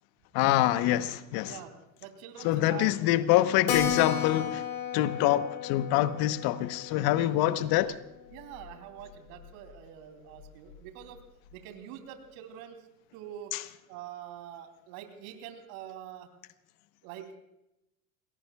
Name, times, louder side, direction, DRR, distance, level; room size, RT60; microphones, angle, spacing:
voice 1, 0.3-1.6 2.4-4.6 4.9-8.0 13.5-13.6, left 14 dB, 50° left, 1.1 m, -25 dB
voice 2, 2.0-2.9 8.3-11.2 11.5-12.8 13.1-13.5 13.9-16.3 17.0-17.4, right 10 dB, 60° right, 3.4 m, -45 dB
Keyboard (musical), 3.7-8.7 9.0-9.1 9.4-9.5 9.7-9.8 10.4-10.8, left 8 dB, 70° left, 3.0 m, -35 dB
28.0 x 20.0 x 2.4 m
hypercardioid pair, 80°, 47 cm